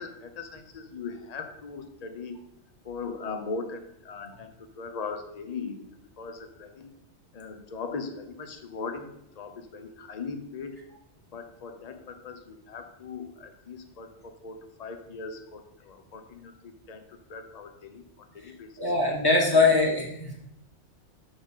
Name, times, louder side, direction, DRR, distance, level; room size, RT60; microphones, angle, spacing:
voice 1, 0.0-2.4 2.8-5.8 6.2-6.9 7.3-9.1 9.4-10.8 11.3-18.9 19.5-19.7, left 4 dB, 40° left, 6 dB, 0.7 m, -39 dB
voice 2, 18.8-20.3, left 3 dB, 20° left, -3 dB, 1.7 m, -22 dB
7.0 x 3.6 x 5.5 m, 0.79 s
omnidirectional pair, 1.2 m